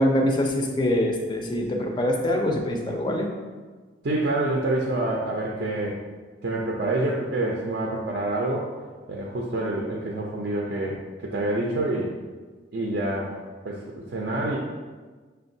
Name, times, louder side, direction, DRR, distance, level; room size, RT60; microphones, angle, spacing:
voice 1, 0.0-3.3, left 1 dB, 25° left, 2 dB, 0.4 m, -24 dB
voice 2, 4.0-6.0 6.4-8.7 9.1-12.1 12.7-13.4 13.6-14.6, right 2 dB, 60° right, -2 dB, 0.4 m, -27 dB
6.4 x 2.2 x 2.6 m, 1.4 s
head